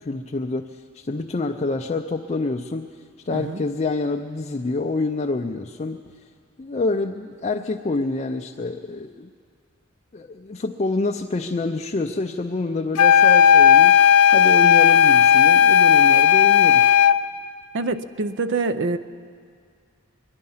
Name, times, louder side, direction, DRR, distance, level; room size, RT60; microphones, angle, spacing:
voice 1, 0.0-2.9 3.2-6.1 6.6-9.3 10.1-14.0 14.3-16.8, left 3 dB, 30° left, 3 dB, 0.4 m, -27 dB
sound 1, 13.0-17.2, left 8 dB, 85° left, 0.5 m, -14 dB
voice 2, 17.7-19.0, right 3 dB, 55° right, 12 dB, 0.5 m, -25 dB
23.5 x 10.5 x 5.6 m, 2.2 s
head